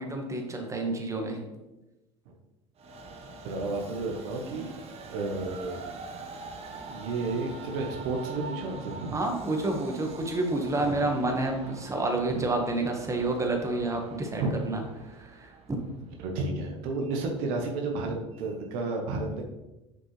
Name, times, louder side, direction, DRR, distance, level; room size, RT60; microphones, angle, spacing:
voice 1, 0.0-1.4 4.5-4.7 9.1-14.8 15.1-15.5, right 2 dB, 20° right, 2 dB, 1.4 m, -29 dB
Train, 2.8-16.2, right 4 dB, 45° right, 1.0 m, -44 dB
voice 2, 3.4-4.7 5.1-5.8 6.7-9.1 10.8-10.9 12.3-12.4 14.4-14.6 16.2-19.5, right 3 dB, 70° right, 2 dB, 1.0 m, -32 dB
6.3 x 5.2 x 3.2 m, 1.0 s
hypercardioid pair, 75°, 15 cm